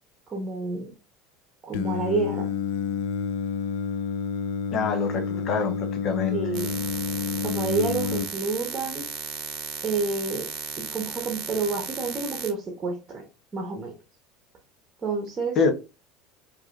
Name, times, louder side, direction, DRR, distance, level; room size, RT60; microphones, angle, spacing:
voice 1, 0.3-0.9 1.6-2.5 6.3-6.7 7.4-9.0 9.8-10.5 10.8-13.2 13.5-13.9 15.0-15.7, right 3 dB, 25° right, 1.0 m, -29 dB
Singing, 1.7-8.3, left 6 dB, 60° left, 0.3 m, -29 dB
voice 2, 4.7-6.4 15.6-15.7, left 5 dB, 40° left, 0.7 m, -25 dB
sound 1, 6.5-12.5, right 7 dB, 45° right, 0.8 m, -35 dB
4.7 x 2.7 x 2.5 m
figure-of-eight pair, 70°, 0 cm